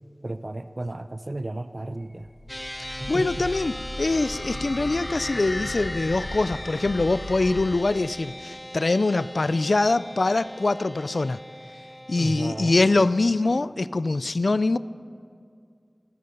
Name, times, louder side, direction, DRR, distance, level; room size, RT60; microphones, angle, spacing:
voice 1, 0.2-2.3 3.0-3.5 12.1-12.7, right 2 dB, 50° right, 11 dB, 0.5 m, -33 dB
sound 1, 2.0-8.1, left 1 dB, 60° left, 1.1 m, -36 dB
sound 2, 2.5-13.3, equal, 10° left, 0.6 m, -40 dB
voice 2, 3.1-11.4 12.1-14.8, left 2 dB, 80° left, 16 dB, 0.3 m, -23 dB
28.5 x 9.6 x 5.3 m, 2.3 s
wide cardioid pair, 45°, 0 cm